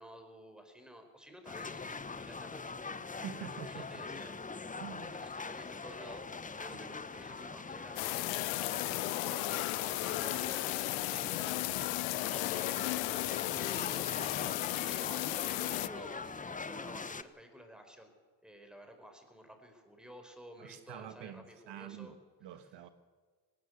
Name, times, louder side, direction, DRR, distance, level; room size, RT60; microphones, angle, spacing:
voice 1, 0.0-4.8 5.1-6.3 6.6-8.1 8.6-9.8 10.2-11.5 12.2-18.1 18.4-22.1, equal, ahead, 4.5 m, -53 dB
sound 1, 1.4-17.2, left 4 dB, 20° left, 1.0 m, -43 dB
voice 2, 3.1-4.0 4.8-5.1 20.6-22.9, right 10 dB, 70° right, 1.4 m, -47 dB
sound 2, 8.0-15.9, left 22 dB, 90° left, 0.6 m, -35 dB
19.0 x 18.5 x 8.1 m
supercardioid pair, 85°, 44 cm